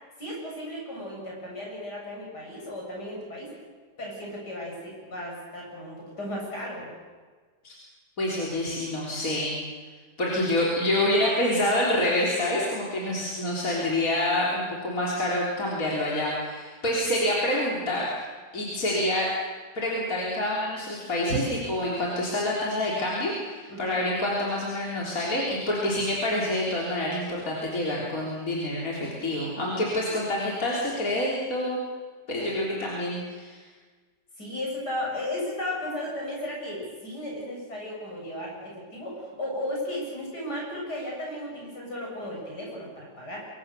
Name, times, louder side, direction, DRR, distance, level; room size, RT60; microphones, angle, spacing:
voice 1, 0.2-3.5 4.0-6.9 23.7-24.0 29.7-30.2 32.4-32.5 34.4-43.5, left 1 dB, 70° left, -2 dB, 8.6 m, -35 dB
voice 2, 8.2-9.6 10.2-18.2 18.5-19.3 19.8-31.8 32.3-33.6, left 1 dB, 55° left, -4 dB, 4.0 m, -27 dB
26.5 x 23.5 x 6.9 m, 1.4 s
omnidirectional pair, 1.8 m